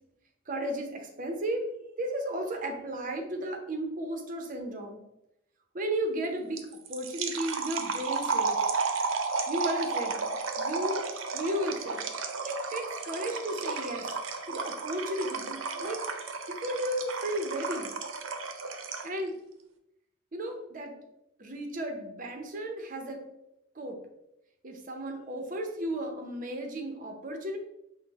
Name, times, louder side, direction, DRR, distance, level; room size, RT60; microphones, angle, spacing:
voice 1, 0.5-1.7 2.0-5.0 5.7-8.6 9.5-11.0 11.3-12.1 12.4-14.1 14.5-16.0 16.5-17.9 19.0-19.3 20.3-20.9 21.4-23.2 23.7-24.0 24.6-27.6, right 1 dB, 45° right, 3 dB, 0.6 m, -34 dB
sound 1, 6.6-19.2, right 4 dB, 85° right, 0.5 m, -33 dB
5.7 x 2.0 x 3.4 m, 0.85 s
head